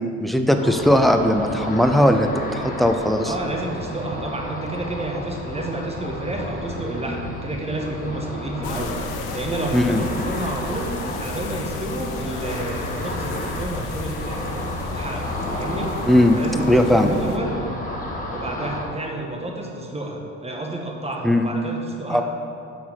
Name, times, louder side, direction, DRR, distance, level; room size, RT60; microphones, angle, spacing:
voice 1, 0.2-3.3 9.7-10.0 16.1-16.4 16.7-17.1 21.2-21.5 22.1-22.2, left 1 dB, ahead, 6 dB, 0.5 m, -18 dB
Ocean, 0.6-18.8, left 1 dB, 20° left, 1.5 m, -32 dB
voice 2, 3.2-9.0 9.3-10.9 11.2-15.3 15.5-16.0 16.3-17.5 18.3-22.2, right 1 dB, 15° right, 0 dB, 1.3 m, -30 dB
sound 1, 8.6-17.4, left 6 dB, 65° left, 0.7 m, -34 dB
5.9 x 4.7 x 5.7 m, 2.5 s
hypercardioid pair, 65°, 40 cm